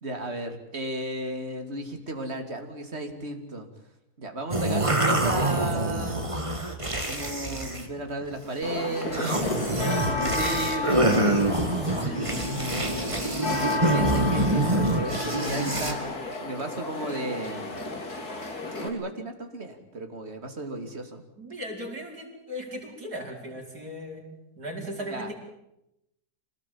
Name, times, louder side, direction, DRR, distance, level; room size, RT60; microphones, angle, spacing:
voice 1, 0.0-3.7 4.2-6.3 7.0-9.6 10.1-11.6 12.0-12.7 13.3-16.1 16.4-17.9 18.8-21.2 25.1-25.3, right 2 dB, 45° right, 6 dB, 3.0 m, -34 dB
sound 1, 4.5-7.9 8.2-8.6 9.0-15.9, right 1 dB, 20° right, 2.5 m, -26 dB
sound 2, 8.6-18.9, left 3 dB, 80° left, 3.4 m, -32 dB
voice 2, 9.7-10.1 21.4-24.2 24.6-25.3, equal, 90° right, -1 dB, 6.1 m, -37 dB
26.0 x 19.0 x 8.8 m, 0.86 s
omnidirectional pair, 1.6 m